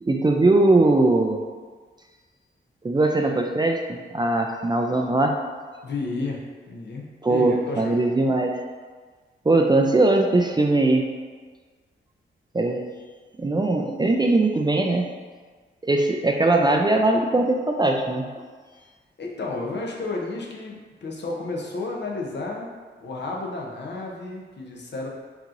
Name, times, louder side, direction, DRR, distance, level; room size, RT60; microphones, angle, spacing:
voice 1, 0.0-1.4 2.8-5.4 7.2-8.6 9.5-11.0 12.5-12.8 13.4-15.1 15.8-18.3, right 2 dB, 20° right, 2 dB, 0.4 m, -20 dB
voice 2, 5.8-6.4 6.7-8.0 19.2-22.7 23.0-25.1, left 3 dB, 55° left, -2 dB, 0.8 m, -32 dB
4.6 x 2.8 x 2.5 m, 1.5 s
cardioid pair, 55°, 21 cm